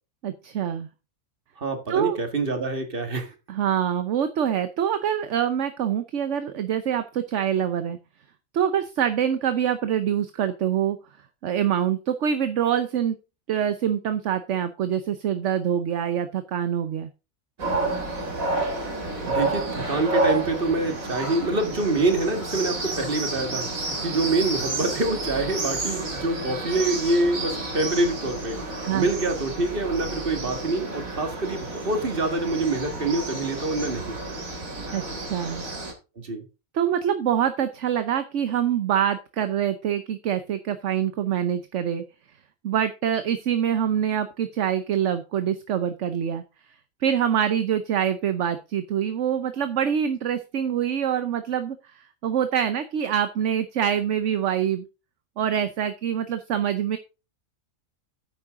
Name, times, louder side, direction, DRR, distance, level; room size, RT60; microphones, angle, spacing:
voice 1, 0.2-0.9 1.9-2.2 3.5-8.0 8.5-11.0 11.4-13.2 13.5-17.1 28.8-29.1 34.9-35.6 36.7-42.0 42.6-46.4 47.0-54.8 55.4-57.0, right 9 dB, 65° right, 1.1 m, -25 dB
voice 2, 1.6-3.3 19.3-28.6 28.9-34.2 36.2-36.4, right 2 dB, 40° right, 2.1 m, -26 dB
sound 1, 17.6-35.9, right 2 dB, 80° right, 3.2 m, -30 dB
9.8 x 8.5 x 3.7 m
omnidirectional pair, 1.4 m